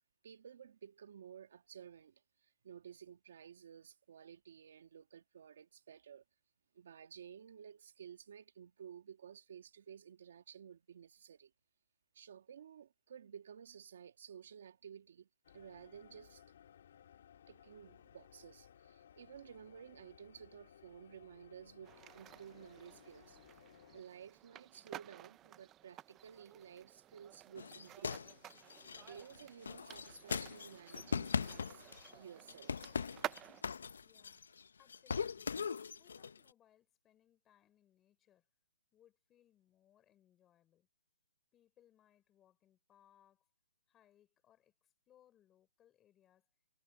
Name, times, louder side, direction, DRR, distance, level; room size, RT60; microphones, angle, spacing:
voice 1, 0.2-6.2 6.7-11.5 12.1-15.3 15.5-16.4 17.5-23.4 23.9-28.2 29.0-31.8 32.1-32.9, right 8 dB, 45° right, 1.6 m, -54 dB
sound 1, 15.4-24.0, left 9 dB, 40° left, 2.4 m, -62 dB
sound 2, 21.8-33.6, right 12 dB, 10° right, 0.4 m, -52 dB
sound 3, 27.6-32.2 32.5-34.6 34.9-36.4, left 6 dB, 70° left, 0.7 m, -40 dB
voice 2, 34.0-34.5 34.8-35.5 36.0-38.5 38.9-40.9 41.5-43.5 43.9-46.5, left 11 dB, 10° left, 4.8 m, -70 dB
hypercardioid pair, 175°, 0 cm